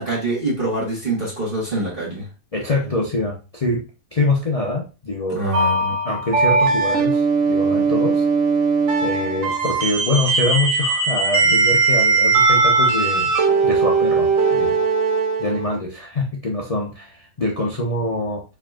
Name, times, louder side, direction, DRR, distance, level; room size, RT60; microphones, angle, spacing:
voice 1, 0.0-2.3 5.3-6.0, right 2 dB, 35° right, 1.4 m, -25 dB
voice 2, 2.5-3.8 4.1-5.4 6.0-8.2 9.0-13.3 13.6-14.8 15.4-18.4, left 2 dB, 70° left, 0.3 m, -24 dB
sound 1, 5.5-15.7, right 4 dB, 60° right, 1.0 m, -19 dB
4.7 x 3.4 x 2.3 m
omnidirectional pair, 1.7 m